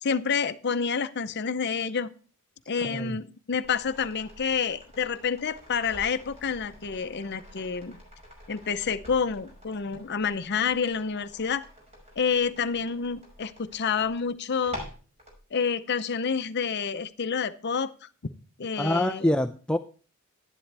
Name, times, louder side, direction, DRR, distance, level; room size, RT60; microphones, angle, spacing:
voice 1, 0.0-2.1 2.7-8.0 8.5-11.7 12.2-14.8 15.5-18.1 18.6-19.3, left 6 dB, 50° left, 11 dB, 0.6 m, -28 dB
voice 2, 2.8-3.2 18.8-19.8, left 1 dB, 5° left, 7 dB, 0.4 m, -26 dB
sound 1, 3.6-15.4 16.9-17.0, equal, 30° right, 5.8 m, -47 dB
11.5 x 10.5 x 3.3 m, 0.40 s
head